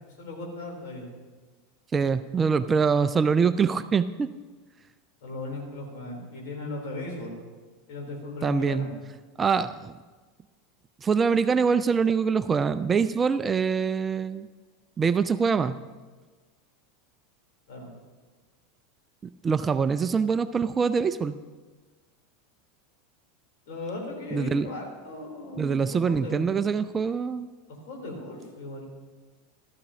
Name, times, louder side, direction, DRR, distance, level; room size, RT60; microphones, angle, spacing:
voice 1, 0.2-1.1 5.2-7.3 7.9-8.9 17.7-17.9 23.7-26.6 27.7-28.9, left 2 dB, 60° left, 0 dB, 3.5 m, -37 dB
voice 2, 1.9-4.3 8.4-8.9 9.4-9.9 11.0-14.5 15.0-15.8 19.4-21.3 24.3-24.7 25.6-27.5, right 5 dB, 25° right, 14 dB, 0.4 m, -24 dB
15.0 x 13.0 x 2.9 m, 1.3 s
figure-of-eight pair, 85°, 0 cm